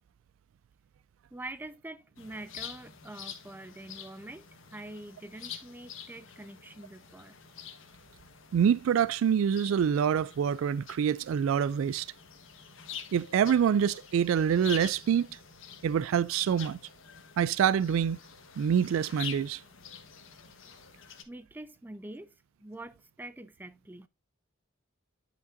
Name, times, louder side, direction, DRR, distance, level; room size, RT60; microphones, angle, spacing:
voice 1, 1.3-7.4 21.3-22.3 22.6-24.1, right 1 dB, 10° right, 0.4 m, -45 dB
sound 1, 2.2-21.2, left 8 dB, 75° left, 1.4 m, -47 dB
voice 2, 8.5-12.1 13.1-15.3 15.8-16.8 17.4-18.2 18.6-19.6, right 8 dB, 85° right, 0.3 m, -26 dB
11.0 x 5.1 x 2.6 m
head